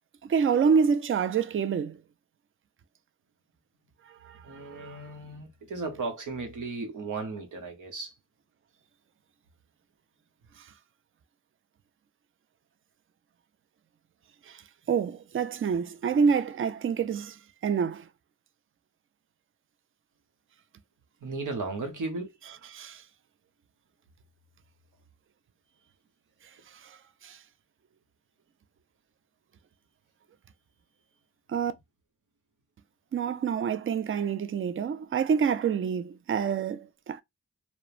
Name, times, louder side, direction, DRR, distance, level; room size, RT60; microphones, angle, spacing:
voice 1, 0.2-2.0 4.1-5.0 10.6-10.7 14.5-14.6 14.9-18.1 22.7-23.0 26.8-27.0 27.2-27.4 31.5-31.7 33.1-37.2, right 6 dB, 45° right, 0.4 m, -27 dB
voice 2, 4.4-8.1 21.2-22.3, right 3 dB, 90° right, 0.9 m, -35 dB
2.9 x 2.1 x 2.4 m
cardioid pair, 45°, 30 cm